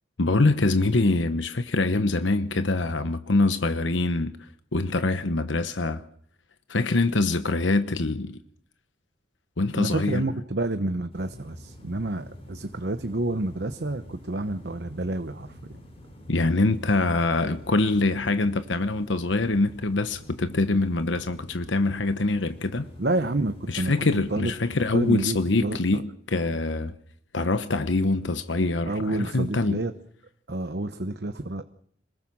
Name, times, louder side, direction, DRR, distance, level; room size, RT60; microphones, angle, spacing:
voice 1, 0.2-4.3 4.7-6.0 6.7-8.4 9.6-10.2 16.3-22.9 23.7-26.9 27.3-29.8, left 2 dB, 85° left, 1.1 m, -24 dB
voice 2, 9.7-15.8 23.0-24.0 24.3-24.5 24.9-26.0 28.9-29.9 30.5-31.6, right 2 dB, 60° right, 1.0 m, -29 dB
sound 1, 11.1-25.8, left 1 dB, 30° left, 6.2 m, -46 dB
26.5 x 20.5 x 6.2 m
head